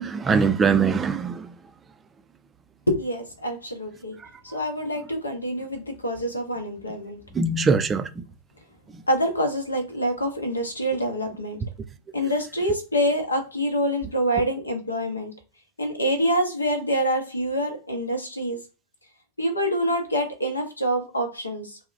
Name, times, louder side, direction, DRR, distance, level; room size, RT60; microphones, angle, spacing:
voice 1, 0.0-1.5 7.3-8.2, right 5 dB, 20° right, 0.3 m, -22 dB
voice 2, 2.9-4.2 4.4-7.2 9.1-11.6 12.1-15.3 15.8-18.6 19.4-21.8, equal, 80° left, 0.7 m, -26 dB
2.7 x 2.1 x 2.5 m
figure-of-eight pair, 90°, 0 cm